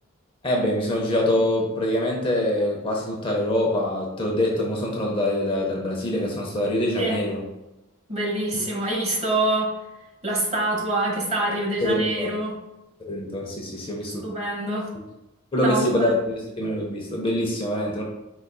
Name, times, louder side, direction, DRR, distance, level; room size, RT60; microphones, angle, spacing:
voice 1, 0.4-7.4 11.8-12.3 13.0-14.3 15.5-18.0, left 1 dB, 25° left, -1 dB, 0.6 m, -24 dB
voice 2, 8.1-9.7 10.2-12.5 14.2-14.9 15.6-16.1, right 2 dB, 30° right, -3 dB, 1.1 m, -25 dB
4.8 x 4.0 x 2.3 m, 0.98 s
head